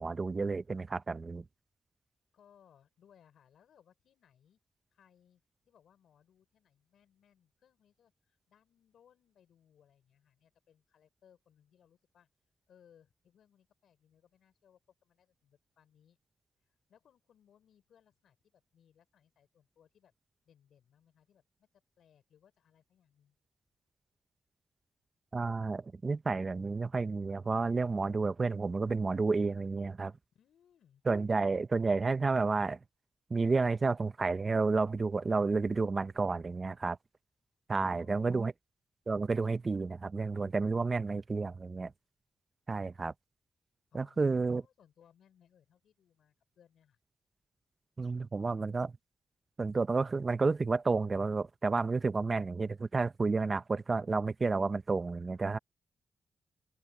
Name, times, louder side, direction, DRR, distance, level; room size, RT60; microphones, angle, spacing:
voice 1, 0.0-1.4 25.3-30.1 31.1-32.8 33.3-37.0 37.7-38.5 39.1-41.9 42.7-43.1 43.9-44.6 48.0-48.9 49.6-55.6, right 4 dB, 40° right, 0.6 m, -31 dB
voice 2, 2.3-4.6 4.9-12.3 12.7-16.2 16.7-20.1 20.4-23.4 30.3-31.0 37.7-38.5 43.9-47.0, left 9 dB, 85° left, 5.1 m, -66 dB
cardioid pair, 65°, 0 cm